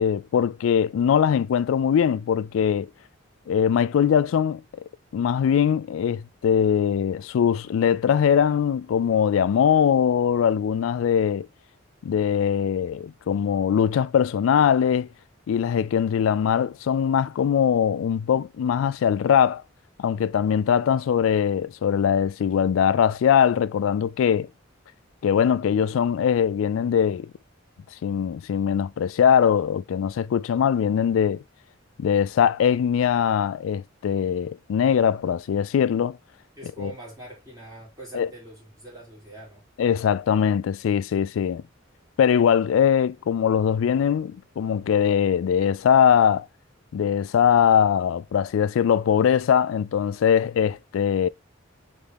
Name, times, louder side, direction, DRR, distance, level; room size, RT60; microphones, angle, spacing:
voice 1, 0.0-2.9 3.5-4.6 5.1-11.5 12.0-15.1 15.5-19.6 20.0-24.5 25.2-27.3 28.0-31.4 32.0-36.2 36.8-36.9 38.1-38.3 39.8-41.6 42.2-46.5 46.9-51.3, left 8 dB, 90° left, 0.3 m, -21 dB
voice 2, 36.6-39.6, right 2 dB, 20° right, 2.5 m, -43 dB
4.1 x 3.6 x 3.3 m
head